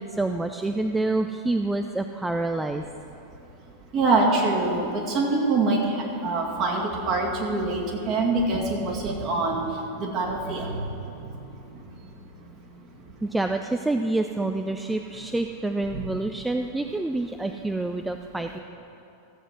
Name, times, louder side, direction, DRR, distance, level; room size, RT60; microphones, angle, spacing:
voice 1, 0.0-2.9 13.2-18.6, right 2 dB, 5° right, 6 dB, 0.4 m, -27 dB
voice 2, 3.9-9.6 10.0-10.9 15.9-16.0, right 3 dB, 35° right, -2 dB, 2.3 m, -24 dB
14.0 x 7.9 x 6.1 m, 3.0 s
figure-of-eight pair, 90°, 0 cm